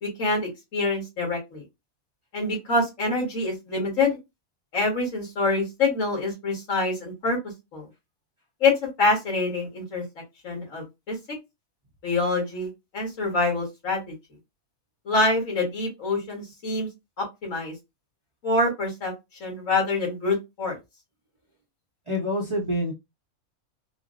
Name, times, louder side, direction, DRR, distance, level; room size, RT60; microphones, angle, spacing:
voice 1, 0.0-1.6 2.3-4.2 4.7-7.4 7.7-7.9 8.6-8.7 9.0-10.0 10.4-11.2 12.0-14.1 15.1-16.9 17.2-17.7 18.4-19.1 19.4-20.8, left 3 dB, 65° left, -1 dB, 1.9 m, -25 dB
voice 2, 22.1-22.9, equal, 35° right, -2 dB, 0.5 m, -26 dB
4.3 x 2.0 x 2.4 m, 0.22 s
omnidirectional pair, 1.5 m